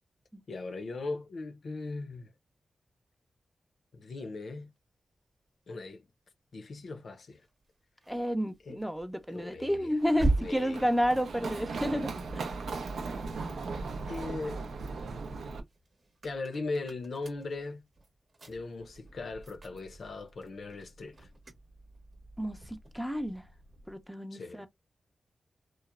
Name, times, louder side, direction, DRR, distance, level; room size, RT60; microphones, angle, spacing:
voice 1, 0.5-2.3 3.9-4.7 5.7-6.1 6.5-7.4 8.7-8.8 9.3-10.0 10.4-10.9 14.0-14.6 16.2-17.8 18.5-21.3 24.3-24.7, left 3 dB, 70° left, 0.5 m, -39 dB
sound 1, 7.3-13.8 14.3-24.1, right 2 dB, 50° right, 0.8 m, -40 dB
voice 2, 8.1-12.4 22.4-23.4 23.9-24.7, equal, ahead, 0.4 m, -31 dB
Run, 10.0-15.6, right 4 dB, 85° right, 0.4 m, -38 dB
3.0 x 2.0 x 2.2 m
cardioid pair, 60°, 0 cm